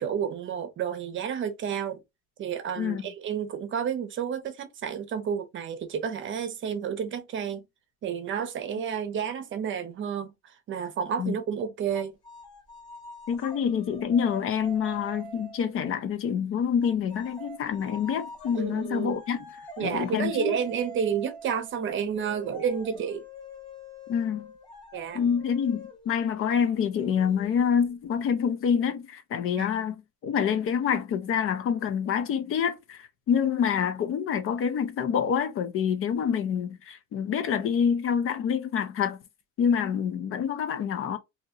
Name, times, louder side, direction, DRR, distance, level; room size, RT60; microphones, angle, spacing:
voice 1, 0.0-2.0 2.4-7.6 8.0-10.3 10.7-12.1 18.5-19.1 19.8-23.2 24.9-25.2 29.6-29.7, right 7 dB, 40° right, 0.8 m, -30 dB
voice 2, 2.8-3.1 11.2-11.4 13.3-19.4 19.8-20.6 24.1-24.5 25.1-39.2 39.6-41.2, left 7 dB, 45° left, 0.6 m, -27 dB
sound 1, 11.9-15.8 16.8-28.1, equal, 20° left, 2.8 m, -45 dB
4.0 x 2.8 x 2.8 m
cardioid pair, 170°, 30 cm